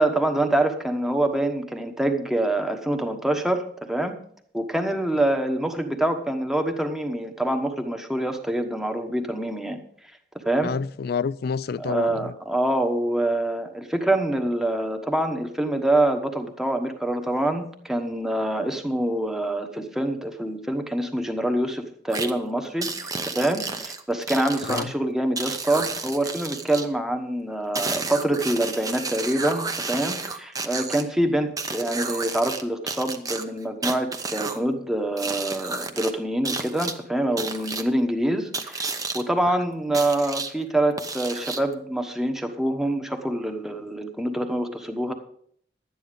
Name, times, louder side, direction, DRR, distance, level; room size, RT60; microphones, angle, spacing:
voice 1, 0.0-4.1 4.5-9.8 10.4-10.7 11.8-22.9 23.3-45.1, right 1 dB, 5° right, 1.2 m, -25 dB
voice 2, 10.6-12.3 24.7-24.9 39.5-39.6, left 5 dB, 60° left, 0.4 m, -28 dB
sound 1, 22.1-22.3 22.8-24.8 25.4-26.9 27.7-31.0 31.6-32.6 32.9-34.6 35.2-36.1 36.4-36.9 37.4-37.8 38.5-39.2 39.9-40.5 41.0-41.7, right 4 dB, 20° right, 0.9 m, -31 dB
12.0 x 9.3 x 5.2 m
head